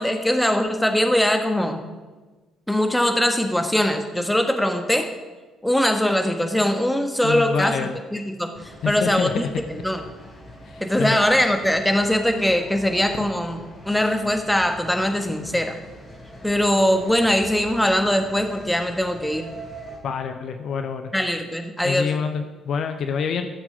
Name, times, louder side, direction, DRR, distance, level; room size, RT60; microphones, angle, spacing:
voice 1, 0.0-1.8 2.7-5.1 5.6-7.7 8.1-8.5 8.9-9.4 9.7-10.0 10.8-13.6 13.9-15.8 16.4-19.5 21.1-22.1, left 1 dB, 5° left, 5 dB, 1.5 m, -21 dB
voice 2, 7.2-8.0 8.8-9.5 10.7-11.2 20.0-21.1 21.8-23.5, left 6 dB, 55° left, 7 dB, 0.7 m, -27 dB
sound 1, 8.5-20.0, equal, 30° left, 3.8 m, -42 dB
13.0 x 7.3 x 5.1 m, 1.3 s
hypercardioid pair, 45°, 0 cm